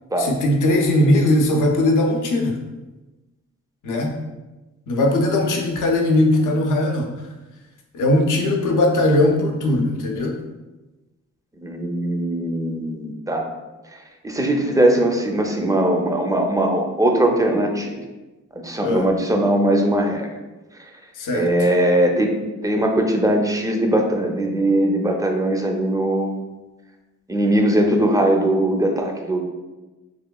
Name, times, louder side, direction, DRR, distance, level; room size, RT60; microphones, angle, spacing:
voice 1, 0.2-2.6 3.8-4.3 4.9-7.1 7.9-10.4 18.8-19.1 21.2-21.7, left 1 dB, 80° left, 2 dB, 0.5 m, -19 dB
voice 2, 11.6-13.5 14.2-18.0 18.6-20.3 21.3-22.4 22.6-26.3 27.3-29.4, right 1 dB, 10° right, 2 dB, 0.4 m, -20 dB
2.9 x 2.3 x 2.2 m, 1.1 s
cardioid pair, 60°, 31 cm